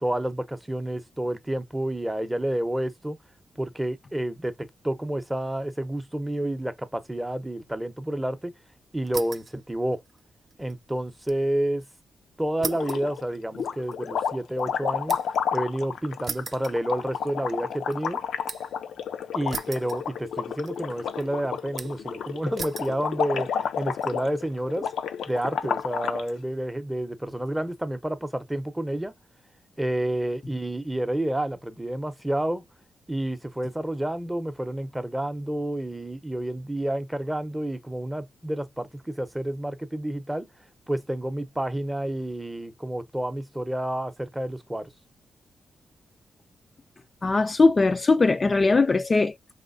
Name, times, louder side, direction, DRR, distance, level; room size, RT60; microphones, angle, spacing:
voice 1, 0.0-3.2 3.6-8.5 8.9-10.0 10.6-11.8 12.4-15.2 15.5-18.2 19.3-24.9 25.3-29.1 29.8-32.6 33.1-40.5 40.9-44.9, right 1 dB, 10° right, 0.7 m, -29 dB
sound 1, 9.1-9.6 9.9-11.5 11.8-11.9 12.6-15.5 16.2-17.4 17.7-18.8 19.5-20.4 20.6-21.2 21.8-22.1 22.6-23.0 23.6-24.1, right 5 dB, 45° right, 0.4 m, -39 dB
sound 2, 12.6-13.2 13.5-26.3, left 7 dB, 85° left, 0.5 m, -31 dB
voice 2, 47.2-49.5, left 3 dB, 30° left, 0.3 m, -20 dB
4.9 x 3.1 x 2.5 m
wide cardioid pair, 125°, 0 cm